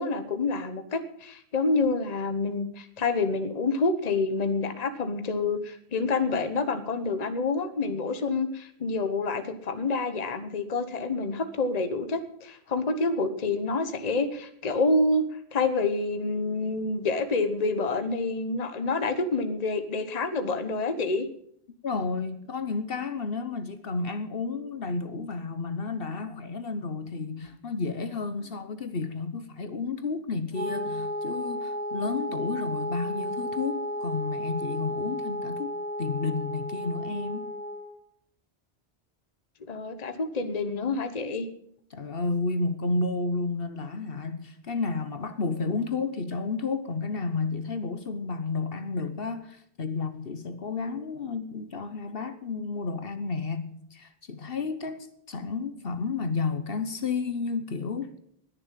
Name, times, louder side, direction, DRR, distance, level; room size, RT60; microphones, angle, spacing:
voice 1, 0.0-15.2 15.5-21.3 39.7-41.5, left 3 dB, 40° left, 1.1 m, -28 dB
voice 2, 21.8-35.7 36.0-37.4 41.9-58.1, left 4 dB, 60° left, 1.2 m, -31 dB
Wind instrument woodwind instrument, 30.5-38.0, equal, 40° right, 2.0 m, -33 dB
20.5 x 7.0 x 7.5 m
omnidirectional pair, 1.1 m